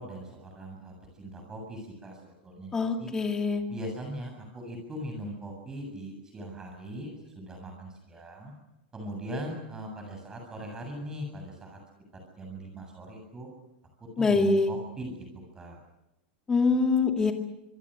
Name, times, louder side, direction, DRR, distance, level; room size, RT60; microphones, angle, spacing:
voice 1, 0.0-3.1 3.7-8.5 8.9-11.8 12.4-13.5 14.0-15.2 15.5-15.8, right 1 dB, 10° right, 3 dB, 7.6 m, -40 dB
voice 2, 2.7-3.6 14.2-14.7 16.5-17.3, left 4 dB, 10° left, 4 dB, 2.2 m, -24 dB
26.0 x 23.0 x 6.7 m, 0.89 s
supercardioid pair, 170°, 6 cm